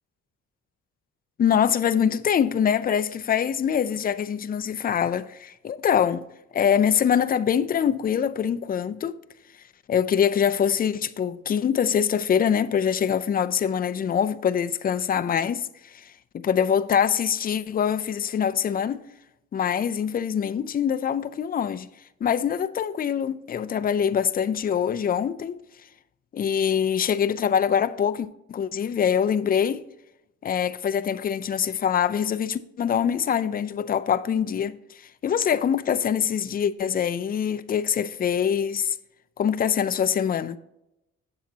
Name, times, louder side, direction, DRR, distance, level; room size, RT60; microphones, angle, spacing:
voice 1, 1.4-6.2 6.5-9.2 9.9-19.1 19.5-21.9 22.2-25.6 26.3-29.9 30.4-39.0 39.4-40.6, left 8 dB, 30° left, 0.4 m, -24 dB
8.7 x 7.2 x 2.8 m
cardioid pair, 90°, 30 cm